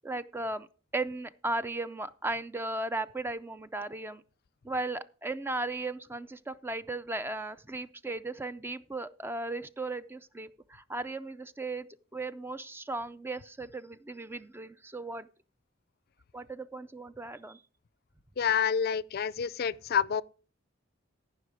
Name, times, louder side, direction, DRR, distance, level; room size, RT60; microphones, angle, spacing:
voice 1, 0.0-0.7 0.9-4.2 4.6-11.9 12.1-15.3 16.3-17.6, right 2 dB, 10° right, 0.4 m, -36 dB
voice 2, 18.4-20.2, left 7 dB, 50° left, 0.4 m, -28 dB
14.5 x 5.7 x 4.9 m
head